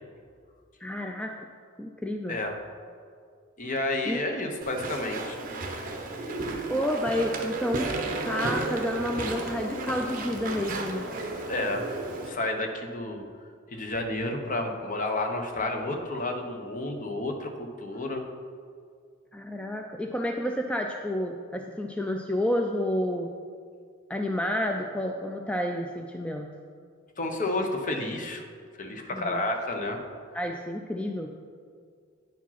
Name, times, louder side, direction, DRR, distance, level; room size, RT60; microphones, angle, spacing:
voice 1, 0.8-1.3 1.8-2.4 4.1-4.2 6.7-7.9 8.2-11.1 19.3-23.3 24.1-26.5 29.1-29.4 30.3-31.3, equal, 5° left, 3 dB, 0.3 m, -30 dB
voice 2, 3.6-5.4 11.5-11.8 12.2-13.3 13.7-18.2 27.2-28.4 28.8-30.0, left 2 dB, 40° left, 4 dB, 0.8 m, -30 dB
Walk footsteps / Chatter / Squeak, 4.6-12.3, right 2 dB, 45° right, 0.9 m, -33 dB
9.2 x 4.9 x 5.7 m, 2.1 s
head